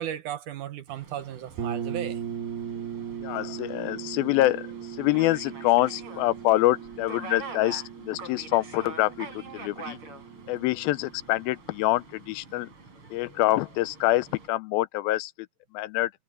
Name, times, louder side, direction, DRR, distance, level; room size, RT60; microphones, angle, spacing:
voice 1, 0.0-2.2, right 10 dB, 70° right, 2.1 m, -35 dB
Subway metro underground, 0.9-14.5, right 4 dB, 35° right, 4.5 m, -45 dB
sound 1, 1.6-11.2, right 7 dB, 85° right, 5.2 m, -38 dB
voice 2, 3.2-10.0 10.5-12.7 13.1-15.5 15.7-16.1, left 17 dB, 80° left, 2.3 m, -26 dB
omnidirectional pair, 4.3 m